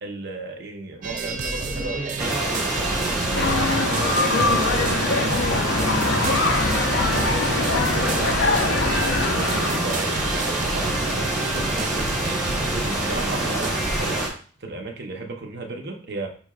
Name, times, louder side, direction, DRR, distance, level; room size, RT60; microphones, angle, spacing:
voice 1, 0.0-14.3 14.6-16.3, right 3 dB, 55° right, 3 dB, 0.7 m, -35 dB
sound 1, 1.0-14.2, right 4 dB, 40° right, 0.4 m, -30 dB
sound 2, 2.2-14.3, right 1 dB, ahead, 1.0 m, -26 dB
sound 3, 3.3-9.8, left 3 dB, 65° left, 0.5 m, -23 dB
5.4 x 2.9 x 2.4 m, 0.42 s
head